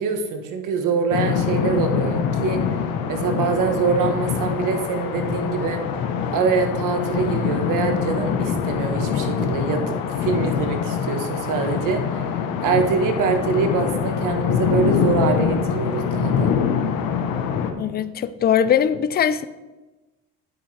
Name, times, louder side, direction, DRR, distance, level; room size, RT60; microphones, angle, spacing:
voice 1, 0.0-2.6 3.1-6.1 6.3-12.3 12.6-16.5, right 5 dB, 65° right, 6 dB, 1.3 m, -24 dB
sound 1, 1.1-17.7, left 7 dB, 75° left, 1.1 m, -24 dB
voice 2, 17.8-19.5, left 8 dB, 30° left, 14 dB, 0.4 m, -20 dB
9.0 x 8.9 x 3.3 m, 1.1 s
cardioid pair, 130°, 34 cm